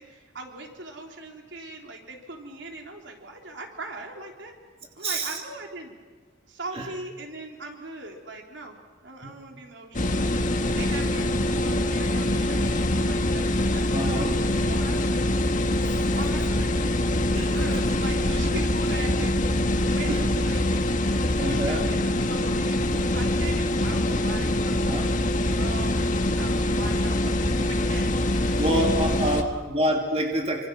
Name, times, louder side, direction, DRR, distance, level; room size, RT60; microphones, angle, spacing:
voice 1, 0.0-4.5 5.0-6.0 6.5-10.3 10.8-13.5 13.7-15.3 16.2-16.7 17.5-20.7 21.0-25.2 25.6-28.6 29.2-29.7, right 2 dB, 80° right, 2 dB, 3.5 m, -40 dB
voice 2, 5.0-5.4 6.8-6.9 9.2-9.3 13.9-14.3 15.7-16.0 17.3-17.6 20.1-20.2 21.4-21.8 24.7-25.1 28.6-30.7, right 1 dB, 35° right, 1 dB, 2.6 m, -27 dB
sound 1, 9.9-29.4, left 1 dB, 45° left, 1.5 m, -24 dB
26.0 x 26.0 x 6.2 m, 1.4 s
head